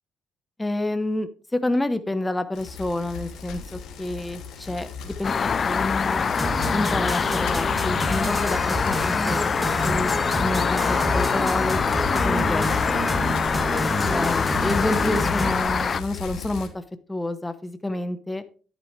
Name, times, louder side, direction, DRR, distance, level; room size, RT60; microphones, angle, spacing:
voice 1, 0.6-6.3 6.7-10.1 10.4-11.8 12.1-12.7 14.1-16.8 17.1-18.4, left 1 dB, 10° left, 10 dB, 0.9 m, -28 dB
Bicycle, 2.5-16.7, left 5 dB, 75° left, 1.8 m, -36 dB
sound 1, 5.2-16.0, left 6 dB, 40° left, 0.5 m, -25 dB
sound 2, 6.3-15.5, equal, 10° right, 2.5 m, -28 dB
10.5 x 8.3 x 3.2 m, 0.38 s
cardioid pair, 90°, 0 cm